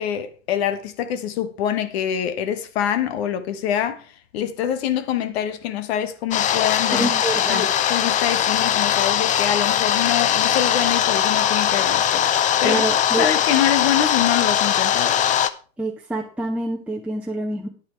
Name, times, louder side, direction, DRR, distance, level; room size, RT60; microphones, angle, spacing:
voice 1, 0.0-7.1 7.5-15.2, left 10 dB, 55° left, 1.5 m, -25 dB
sound 1, 6.3-15.5, left 10 dB, 20° left, 0.5 m, -20 dB
voice 2, 6.9-7.7 12.6-13.3 15.8-17.7, right 2 dB, 5° right, 1.2 m, -26 dB
9.8 x 8.6 x 4.5 m
hypercardioid pair, 100°, 38 cm